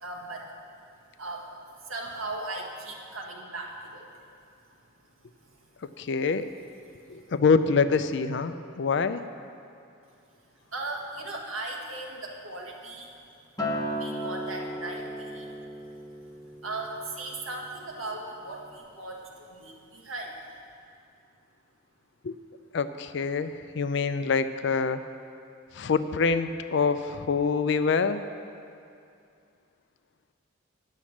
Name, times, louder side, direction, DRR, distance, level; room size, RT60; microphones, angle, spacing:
voice 1, 0.0-0.5 1.2-1.5 1.8-4.1 5.4-6.0 6.8-7.3 10.7-13.1 14.0-15.5 16.6-20.4, right 2 dB, 90° right, -1 dB, 1.5 m, -38 dB
voice 2, 6.0-6.5 7.1-9.2 22.2-22.4 22.7-25.0 25.7-28.2, left 5 dB, 60° left, 11 dB, 0.4 m, -25 dB
Acoustic guitar, 13.6-18.0 18.4-18.8, equal, 20° left, 0.9 m, -36 dB
10.0 x 6.3 x 7.1 m, 2.5 s
head